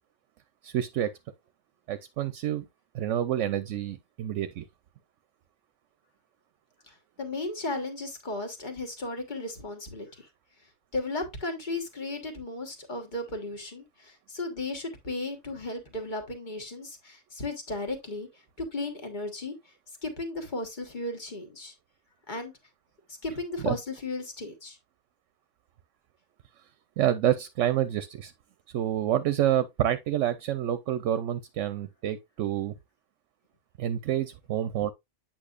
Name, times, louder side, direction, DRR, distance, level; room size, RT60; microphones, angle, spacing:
voice 1, 0.6-1.1 1.9-2.7 2.9-4.6 23.6-23.7 27.0-28.3 28.7-32.7 33.8-34.9, right 11 dB, 75° right, 0.9 m, -28 dB
voice 2, 6.9-10.3 10.9-18.3 18.6-19.7 20.0-21.7 22.3-22.5 23.2-24.8, left 2 dB, 40° left, 1.7 m, -35 dB
8.6 x 5.9 x 2.4 m
omnidirectional pair, 1.3 m